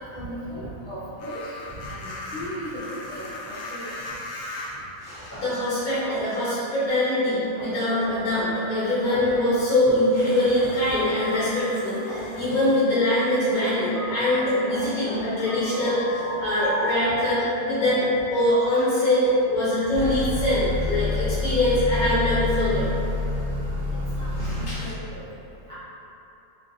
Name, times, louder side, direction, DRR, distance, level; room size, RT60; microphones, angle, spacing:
voice 1, 0.1-1.5 1.9-2.8 3.1-3.9 23.7-24.3 24.8-25.2 25.7-25.8, equal, 35° right, -11 dB, 0.5 m, -37 dB
sound 1, 1.2-4.9 5.9-6.0 10.1-12.7, left 2 dB, 90° left, 1.3 m, -39 dB
voice 2, 5.0-18.0 18.3-22.8 24.4-24.8, left 1 dB, 70° left, -13 dB, 1.7 m, -23 dB
sound 2, 5.3-6.5 7.6-9.5 10.6-12.5 13.6-17.9, equal, 15° left, 0.6 m, -35 dB
Motor vehicle (road) / Accelerating revving vroom, 19.9-24.9, left 2 dB, 65° right, 0.9 m, -27 dB
3.8 x 3.2 x 2.6 m, 2.9 s
omnidirectional pair, 1.6 m